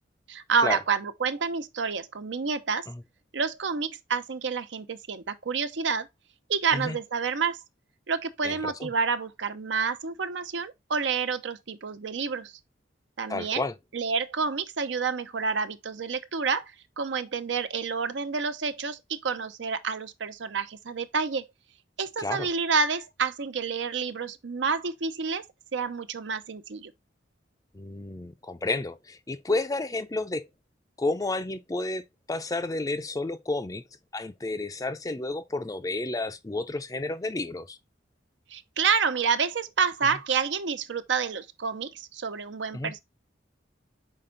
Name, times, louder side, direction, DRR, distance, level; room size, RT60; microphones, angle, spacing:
voice 1, 0.3-2.9 3.3-6.1 6.5-7.6 8.1-12.5 13.2-13.7 13.9-21.5 22.0-25.5 25.7-26.9 38.5-43.0, right 5 dB, 70° right, 0.7 m, -29 dB
voice 2, 8.4-8.9 13.3-13.7 22.2-22.5 27.7-30.5 31.0-33.8 34.1-37.8 42.7-42.9, left 2 dB, 20° left, 0.5 m, -31 dB
5.8 x 4.3 x 3.8 m
head